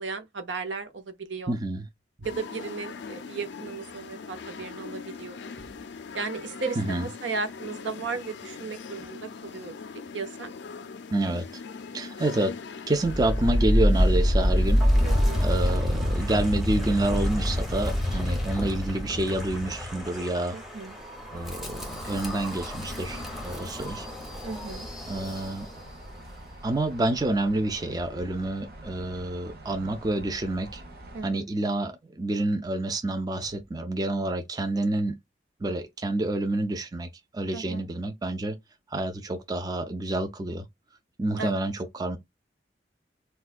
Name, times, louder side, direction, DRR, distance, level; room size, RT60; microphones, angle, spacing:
voice 1, 0.0-1.5 2.2-5.5 6.1-9.8 10.1-10.5 15.0-15.4 20.5-21.0 24.4-24.9 31.1-31.4 37.5-37.8 41.4-41.6, right 4 dB, 75° right, 0.6 m, -35 dB
voice 2, 1.5-1.9 6.8-7.1 11.1-11.6 11.9-12.6 12.9-14.8 15.4-20.6 21.3-24.1 25.1-25.7 26.6-30.8 31.2-35.2 35.6-38.6 38.9-40.7 41.2-42.2, right 2 dB, 20° right, 0.4 m, -28 dB
sound 1, 2.2-15.8, left 5 dB, 70° left, 0.4 m, -41 dB
Wind, 13.0-26.0, equal, ahead, 0.7 m, -27 dB
sound 2, 21.3-31.2, right 1 dB, 55° right, 1.0 m, -45 dB
4.3 x 2.2 x 2.4 m
head